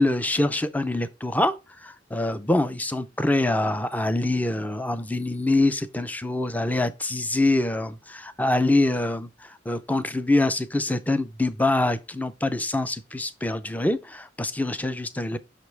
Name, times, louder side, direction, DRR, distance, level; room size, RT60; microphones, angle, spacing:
voice 1, 0.0-15.4, left 2 dB, 10° left, 0.5 m, -25 dB
6.0 x 5.2 x 4.6 m
head